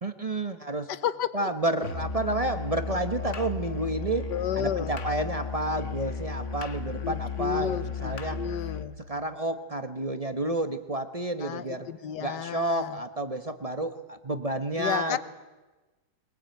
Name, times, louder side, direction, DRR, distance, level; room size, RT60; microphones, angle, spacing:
voice 1, 0.0-0.9 1.3-4.3 4.6-8.4 9.1-11.9 12.2-15.2, right 1 dB, 25° right, 9 dB, 0.9 m, -30 dB
voice 2, 0.9-1.5 4.3-4.9 7.0-8.9 11.4-13.0 14.8-15.2, left 9 dB, 65° left, 15 dB, 1.5 m, -32 dB
Musical instrument, 1.8-8.9, left 5 dB, 40° left, 1.4 m, -34 dB
23.0 x 21.0 x 9.2 m, 1.2 s
omnidirectional pair, 2.1 m